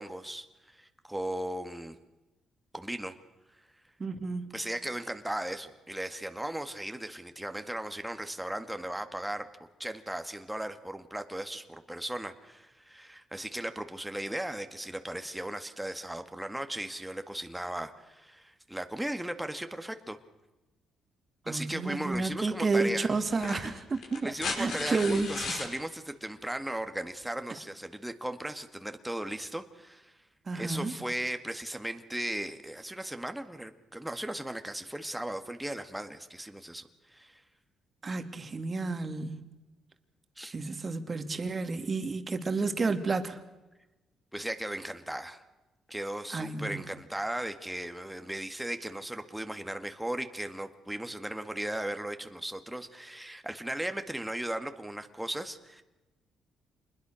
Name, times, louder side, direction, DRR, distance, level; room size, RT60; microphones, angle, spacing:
voice 1, 0.0-2.0 2.7-3.2 4.5-9.5 9.8-20.2 21.5-23.1 24.2-30.2 30.5-37.4 40.4-40.5 44.3-45.4 45.9-55.8, right 1 dB, 5° right, 2.0 m, -37 dB
voice 2, 4.0-4.5 21.5-24.3 24.6-25.3 30.5-30.9 38.0-39.4 40.5-43.4 46.3-46.8, right 3 dB, 35° right, 2.5 m, -31 dB
sound 1, 22.1-22.3 23.3-25.7 27.2-27.3, left 4 dB, 65° left, 6.8 m, -36 dB
27.5 x 21.0 x 6.5 m
cardioid pair, 90°, 0 cm